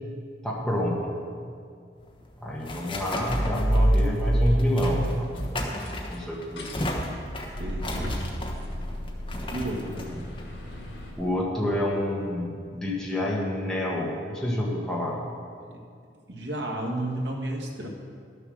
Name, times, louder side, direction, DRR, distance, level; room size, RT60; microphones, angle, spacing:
voice 1, 0.4-1.0 2.4-5.3 6.1-6.7 11.2-15.2, left 1 dB, 5° left, -4 dB, 1.3 m, -28 dB
sound 1, 2.0-11.3, left 1 dB, 30° left, 1.2 m, -36 dB
sound 2, 3.3-6.2, right 1 dB, 15° right, 0.3 m, -25 dB
sound 3, 5.3-11.1, left 1 dB, 80° left, 2.3 m, -37 dB
voice 2, 7.6-8.2 9.5-10.2 16.3-17.9, right 1 dB, 70° right, 0 dB, 1.7 m, -32 dB
12.0 x 6.8 x 6.4 m, 2.2 s
head